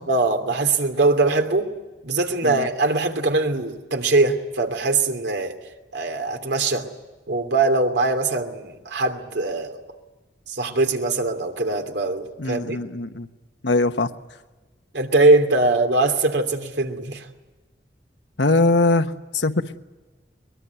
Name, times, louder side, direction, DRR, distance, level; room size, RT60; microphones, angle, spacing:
voice 1, 0.1-1.7 2.0-5.6 5.9-6.9 7.3-9.8 10.5-12.8 14.9-17.3, right 2 dB, 75° right, 6 dB, 2.8 m, -21 dB
voice 2, 12.4-13.3 13.6-14.1 18.4-19.8, left 2 dB, 85° left, 9 dB, 1.2 m, -21 dB
23.0 x 21.0 x 9.4 m, 1.2 s
head